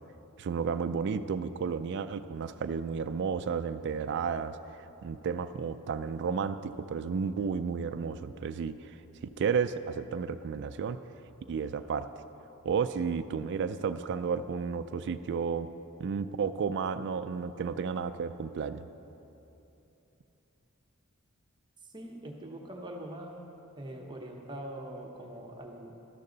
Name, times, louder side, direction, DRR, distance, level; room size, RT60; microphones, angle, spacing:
voice 1, 0.4-9.0 9.2-11.0 11.5-12.1 12.6-15.7 16.0-18.8, right 6 dB, 55° right, 10 dB, 0.3 m, -32 dB
voice 2, 21.9-23.4 23.8-25.9, right 1 dB, 20° right, 1 dB, 0.9 m, -42 dB
12.5 x 12.0 x 3.9 m, 3.0 s
head